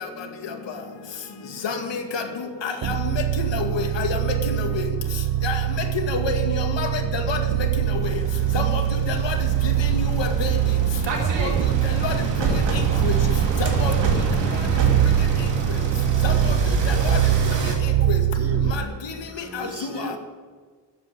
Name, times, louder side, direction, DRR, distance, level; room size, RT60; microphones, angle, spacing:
voice 1, 1.6-2.2 2.6-2.7 3.5-4.2 5.4-5.6 6.1-7.4 8.5-8.8 9.1-9.4 9.9-10.5 11.4-11.5 12.0-12.1 13.0-13.2 13.6-13.9 16.2-16.3 16.9-17.2 18.1-18.2 19.5-19.7, left 5 dB, 85° left, 4 dB, 2.2 m, -27 dB
sound 1, 2.8-19.0, right 12 dB, 55° right, 0.5 m, -23 dB
voice 2, 4.9-5.3 8.3-9.0 13.8-14.4 16.2-16.8 18.6-19.3, left 2 dB, 45° left, 2 dB, 2.5 m, -43 dB
sound 2, 6.0-6.3 6.9-17.8, right 3 dB, 85° right, 3.1 m, -28 dB
voice 3, 12.8-13.2 13.9-14.0 17.4-18.8 19.3-20.2, right 2 dB, 35° right, 7 dB, 1.4 m, -38 dB
14.0 x 9.7 x 9.3 m, 1.5 s
wide cardioid pair, 170°, 42 cm